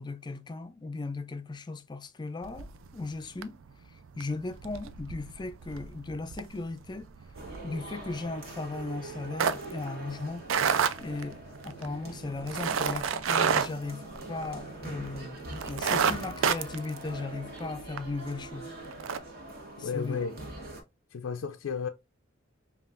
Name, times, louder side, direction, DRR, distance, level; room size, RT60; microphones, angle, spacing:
voice 1, 0.0-2.7 2.9-3.6 3.9-7.1 7.6-10.5 11.0-18.7 19.8-20.2, left 3 dB, 25° left, 0.4 m, -37 dB
sound 1, 2.4-3.1 3.4-3.7 4.0-14.8 15.1-15.2 15.5-18.1 18.4-18.5 18.9-19.2, right 7 dB, 90° right, 0.4 m, -30 dB
sound 2, 7.3-20.8, right 2 dB, 50° right, 1.4 m, -43 dB
voice 2, 19.8-20.4 21.1-21.9, left 6 dB, 85° left, 0.4 m, -33 dB
5.3 x 2.4 x 2.4 m
head